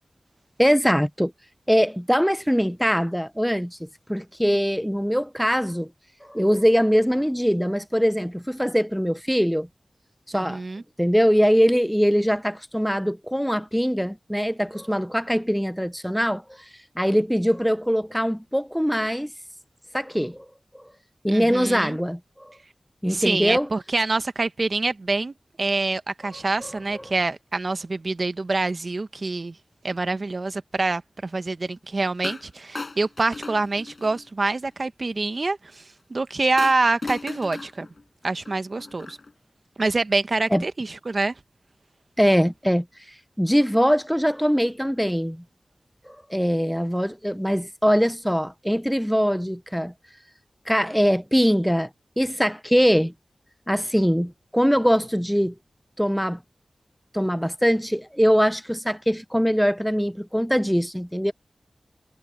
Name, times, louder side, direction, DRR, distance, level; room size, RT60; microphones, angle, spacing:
voice 1, 0.6-1.3 1.7-5.9 6.2-9.7 10.3-10.6 11.0-16.7 17.0-19.3 19.9-20.5 20.7-20.8 21.2-22.5 23.0-23.7 26.3-27.0 40.5-40.6 42.2-42.8 43.4-45.4 46.1-49.9 50.7-51.9 52.2-53.1 53.7-55.6 56.0-56.4 57.1-61.3, equal, ahead, 0.6 m, -22 dB
voice 2, 10.3-10.8 21.3-22.0 23.1-25.3 25.6-29.5 29.8-35.8 36.1-37.9 38.2-39.2 39.8-41.3, right 3 dB, 55° right, 1.1 m, -26 dB
sound 1, 32.2-32.5 32.8-34.3 36.6-39.3, left 3 dB, 55° left, 5.3 m, -36 dB
wide cardioid pair, 55°, 0 cm